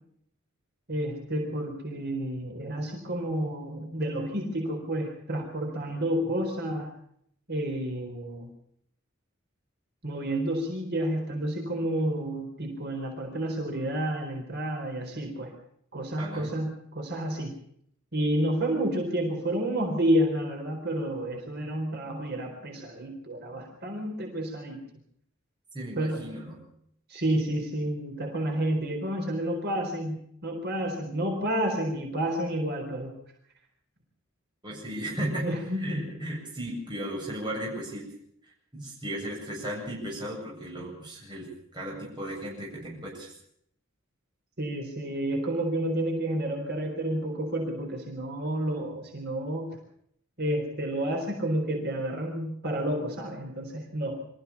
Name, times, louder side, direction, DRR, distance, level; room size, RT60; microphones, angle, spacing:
voice 1, 0.9-6.9 7.5-8.5 10.0-15.5 15.9-17.5 18.1-24.8 26.0-26.3 27.1-30.2 30.4-33.1 35.4-36.0 44.6-49.7 50.4-54.2, right 1 dB, 55° right, 2 dB, 4.2 m, -30 dB
voice 2, 16.2-16.5 25.7-26.6 34.6-35.5 35.8-38.1 38.7-43.3, right 1 dB, 25° right, -3 dB, 7.9 m, -35 dB
25.0 x 15.0 x 7.2 m, 0.68 s
head